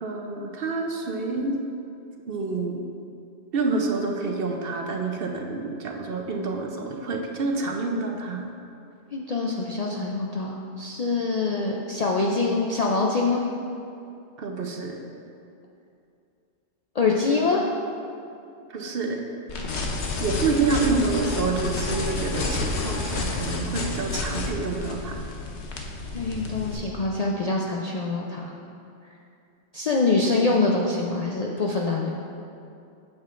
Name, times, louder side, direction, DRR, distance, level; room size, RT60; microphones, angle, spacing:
voice 1, 0.0-1.6 2.3-2.8 3.5-8.4 14.4-15.0 18.7-19.2 20.2-25.3, right 3 dB, 60° right, 2 dB, 0.8 m, -28 dB
voice 2, 9.1-13.4 16.9-17.7 26.1-28.5 29.7-32.1, left 3 dB, 55° left, -2 dB, 0.4 m, -25 dB
sound 1, 19.5-26.7, left 3 dB, 75° left, 1.0 m, -30 dB
8.7 x 7.4 x 2.5 m, 2.6 s
omnidirectional pair, 1.2 m